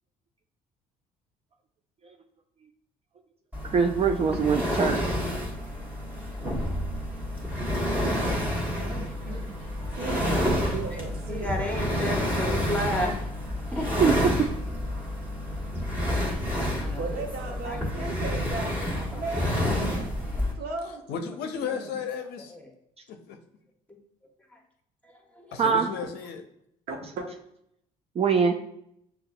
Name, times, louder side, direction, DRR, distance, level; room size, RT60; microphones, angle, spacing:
sound 1, 3.5-20.5, equal, 10° right, 1.4 m, -29 dB
voice 1, 3.6-5.0 14.0-14.1 25.6-25.9 28.2-28.6, right 6 dB, 35° right, 4 dB, 0.4 m, -23 dB
voice 2, 8.0-9.4 10.0-11.5 17.0-18.8 19.1-20.0 20.5-22.0 26.9-27.3, right 3 dB, 65° right, 2 dB, 0.9 m, -37 dB
voice 3, 9.8-11.0 11.3-13.2 13.7-13.8 16.1-16.2 16.8-17.0 17.5-18.1 19.0-19.7 22.5-22.7 23.9-24.0 24.5-24.6 25.0-26.1, left 1 dB, 10° left, 1 dB, 1.1 m, -35 dB
voice 4, 21.1-22.6 23.1-23.4 25.5-26.4, left 6 dB, 70° left, 6 dB, 0.5 m, -34 dB
6.6 x 2.3 x 2.2 m, 0.74 s
hypercardioid pair, 60°, 17 cm